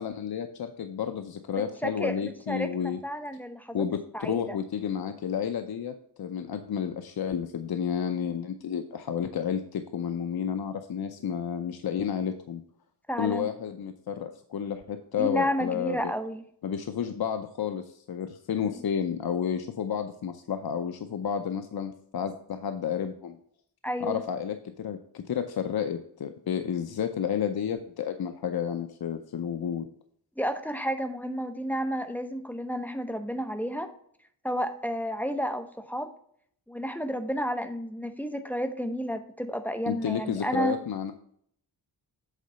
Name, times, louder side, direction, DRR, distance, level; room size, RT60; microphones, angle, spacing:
voice 1, 0.0-3.0 3.7-12.6 13.2-16.1 16.6-23.4 24.0-29.9 39.9-41.1, left 8 dB, 65° left, 7 dB, 0.7 m, -31 dB
voice 2, 1.6-3.9 4.1-4.5 13.1-13.5 15.2-16.4 18.5-18.8 23.8-24.2 30.4-33.9 34.4-36.1 36.7-40.8, equal, 5° left, 7 dB, 0.8 m, -31 dB
8.3 x 3.8 x 5.5 m, 0.64 s
wide cardioid pair, 95°, 40 cm